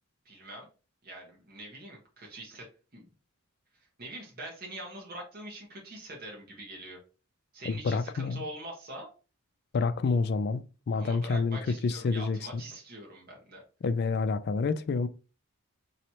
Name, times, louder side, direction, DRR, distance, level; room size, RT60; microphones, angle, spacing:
voice 1, 0.2-0.7 1.0-2.7 2.9-3.1 4.0-7.0 7.5-9.1 10.9-13.6, right 1 dB, 45° right, 1.2 m, -44 dB
voice 2, 7.7-8.4 9.7-12.6 13.8-15.1, left 4 dB, 45° left, 0.3 m, -28 dB
3.1 x 2.8 x 4.2 m
head